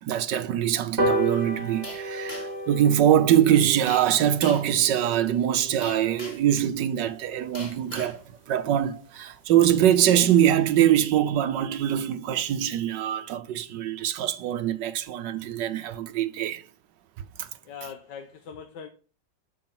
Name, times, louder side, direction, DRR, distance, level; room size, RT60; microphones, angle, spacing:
voice 1, 0.0-16.6 17.4-17.5, right 11 dB, 75° right, 1.4 m, -23 dB
sound 1, 1.0-7.7 8.1-8.2 8.6-8.7 8.9-9.0 9.3-9.4 9.7-10.0 10.4-10.5, right 1 dB, 35° right, 2.0 m, -33 dB
sound 2, 1.8-2.7 3.9-4.1 4.4-4.7 5.8-6.5 7.5-8.2, left 1 dB, 20° left, 2.9 m, -40 dB
voice 2, 17.6-18.9, left 7 dB, 70° left, 1.4 m, -41 dB
11.5 x 4.7 x 5.9 m
omnidirectional pair, 2.0 m